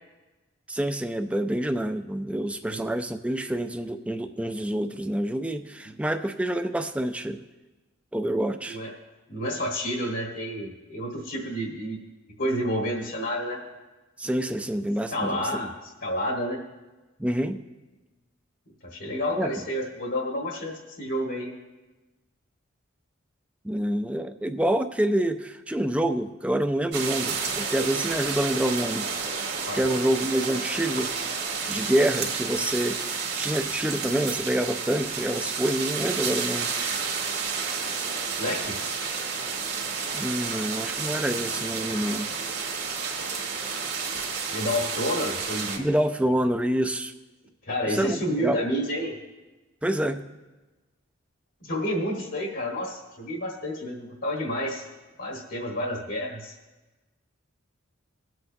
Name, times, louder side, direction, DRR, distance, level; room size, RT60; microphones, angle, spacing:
voice 1, 0.7-7.4 8.1-8.8 14.2-15.5 17.2-17.6 19.4-19.5 23.6-29.1 29.7-31.1 31.7-36.7 40.1-42.3 45.8-47.1 47.9-48.6 49.8-50.2, right 1 dB, 5° right, 7 dB, 0.4 m, -27 dB
voice 2, 9.3-12.0 12.4-13.6 15.1-16.6 18.8-21.5 29.7-29.8 38.4-38.8 44.5-45.8 47.6-49.1 51.6-54.8 55.2-56.5, equal, 65° left, -1 dB, 1.5 m, -30 dB
sound 1, 26.9-45.8, right 5 dB, 50° right, 1.7 m, -30 dB
20.5 x 7.8 x 2.7 m, 1.2 s
head